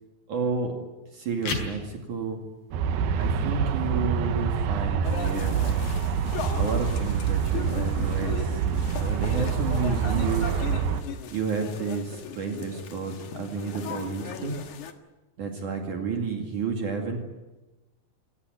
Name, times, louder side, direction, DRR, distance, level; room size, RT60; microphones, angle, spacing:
voice 1, 0.3-0.7 1.1-2.4 3.2-5.8 6.5-10.6 11.3-14.6 15.4-17.2, right 4 dB, 55° right, 2 dB, 3.7 m, -31 dB
sound 1, 1.3-12.3, left 4 dB, 85° left, 6.9 m, -44 dB
Aircraft, 2.7-11.0, right 7 dB, 80° right, 3.0 m, -26 dB
sound 2, 5.0-14.9, left 7 dB, 60° left, 2.8 m, -38 dB
26.0 x 17.5 x 9.3 m, 1.1 s
omnidirectional pair, 4.3 m